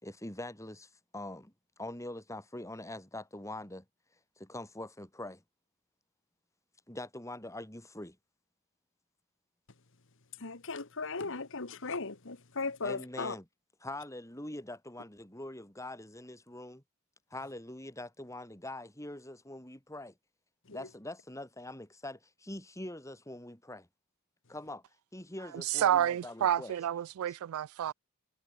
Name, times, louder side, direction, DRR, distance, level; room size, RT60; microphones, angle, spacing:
voice 1, 0.0-1.5 1.8-3.8 4.4-5.4 6.9-8.2 12.8-13.4 13.8-16.8 17.3-20.1 20.7-23.9 24.5-24.8 25.1-26.8, left 1 dB, 15° left, 4.2 m, -43 dB
voice 2, 10.4-13.4 20.7-20.9, left 4 dB, 60° left, 1.6 m, -37 dB
voice 3, 25.5-27.9, right 10 dB, 70° right, 0.3 m, -29 dB
head